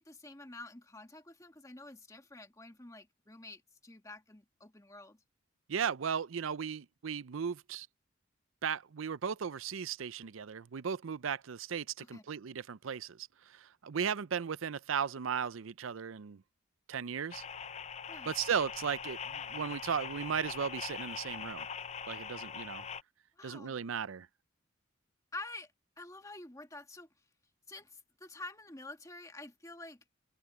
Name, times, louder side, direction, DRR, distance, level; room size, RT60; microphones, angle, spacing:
voice 1, 0.0-5.2 12.0-12.2 18.1-18.3 23.4-23.8 25.3-25.7 26.0-27.1 27.7-30.0, left 2 dB, 15° left, 1.7 m, -48 dB
voice 2, 5.7-7.9 8.6-16.4 16.9-17.4 18.3-21.7 22.1-22.8 23.4-24.3, right 7 dB, 90° right, 0.5 m, -36 dB
sound 1, 17.3-23.0, left 6 dB, 35° left, 0.5 m, -42 dB
head